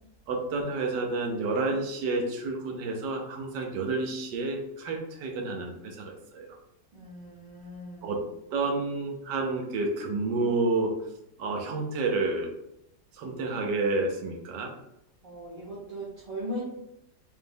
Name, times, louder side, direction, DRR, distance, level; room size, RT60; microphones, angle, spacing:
voice 1, 0.3-6.5 8.0-8.2 8.5-11.0 11.4-12.5 13.1-14.7, right 3 dB, 80° right, 2 dB, 1.3 m, -30 dB
voice 2, 6.9-8.2 15.2-16.6, equal, 50° right, -9 dB, 1.7 m, -38 dB
5.1 x 3.4 x 2.2 m, 0.81 s
omnidirectional pair, 1.9 m